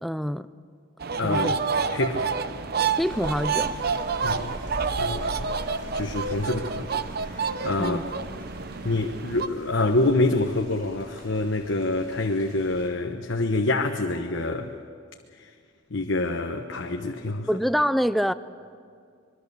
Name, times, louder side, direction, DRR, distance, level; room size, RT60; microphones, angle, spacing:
voice 1, 0.0-0.5 1.2-1.5 3.0-3.7 7.8-8.0 17.5-18.3, equal, ahead, 0.5 m, -25 dB
sound 1, 1.0-9.5, right 5 dB, 50° right, 0.8 m, -29 dB
voice 2, 1.2-1.6 1.9-2.3 4.2-4.6 5.0-5.5 5.9-8.0 8.8-14.7 15.3-15.5 15.9-17.5, left 2 dB, 70° left, 1.1 m, -26 dB
sound 2, 3.0-12.9, right 1 dB, 75° right, 5.2 m, -42 dB
24.5 x 22.0 x 6.9 m
head